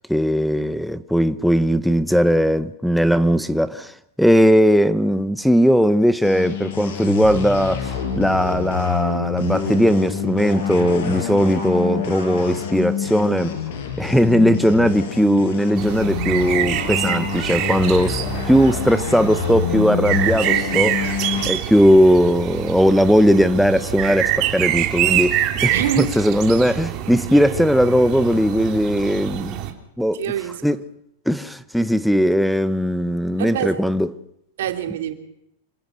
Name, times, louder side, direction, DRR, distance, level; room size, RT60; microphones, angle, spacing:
voice 1, 0.1-13.5 14.0-18.2 18.5-21.0 21.5-29.6 30.0-30.2 30.6-30.8 31.3-34.1, equal, ahead, 0.7 m, -18 dB
sound 1, 6.2-21.5, left 6 dB, 70° left, 5.4 m, -27 dB
sound 2, 15.8-29.7, right 12 dB, 40° right, 3.1 m, -25 dB
voice 2, 25.7-26.1 30.1-30.6 33.4-33.8 34.6-35.1, right 10 dB, 75° right, 3.0 m, -24 dB
27.0 x 16.5 x 6.3 m
supercardioid pair, 140°, 0 cm